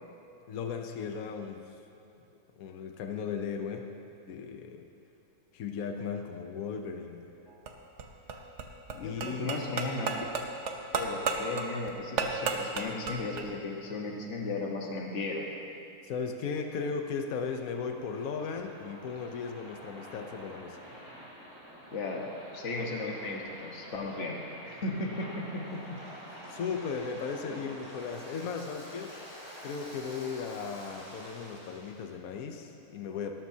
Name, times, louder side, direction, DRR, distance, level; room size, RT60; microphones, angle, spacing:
voice 1, 0.5-1.6 2.6-3.9 4.2-4.8 5.5-7.3 9.0-9.5 16.0-20.8 26.5-29.2 29.6-33.3, left 5 dB, 70° left, 5 dB, 1.2 m, -36 dB
sound 1, 7.5-13.5, right 4 dB, 55° right, 1.1 m, -34 dB
voice 2, 8.9-10.2 10.9-15.5 21.9-24.4 24.7-26.0, left 3 dB, 50° left, 0 dB, 1.6 m, -35 dB
Waves surf, 16.3-32.0, equal, 30° left, 3.4 m, -48 dB
18.5 x 13.0 x 2.8 m, 2.9 s
omnidirectional pair, 1.6 m